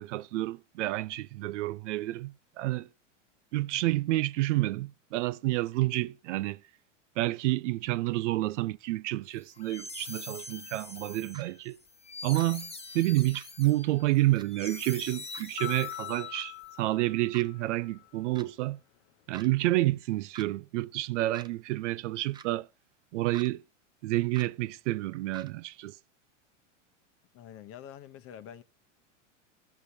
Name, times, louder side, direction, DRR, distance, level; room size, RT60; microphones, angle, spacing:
voice 1, 0.0-2.9 3.5-6.6 7.2-11.8 12.2-12.7 12.9-18.8 19.3-22.7 23.1-23.6 24.0-25.9, right 18 dB, 70° right, 0.5 m, -29 dB
sound 1, 9.4-16.6, left 3 dB, 15° left, 1.4 m, -44 dB
sound 2, 11.3-11.4 12.3-12.5 13.3-13.5 14.4-14.5 15.3-15.5 16.3-16.5 17.3-17.5 18.4-18.5 19.3-19.5 20.3-20.5 21.3-21.5 22.3-22.5 23.3-23.5 24.3-24.5 25.3-25.5, right 6 dB, 10° right, 0.4 m, -47 dB
sound 3, 15.6-18.1, left 19 dB, 55° left, 0.5 m, -42 dB
voice 2, 27.3-28.6, left 10 dB, 35° left, 0.9 m, -46 dB
14.5 x 6.7 x 2.7 m
hypercardioid pair, 110°, 38 cm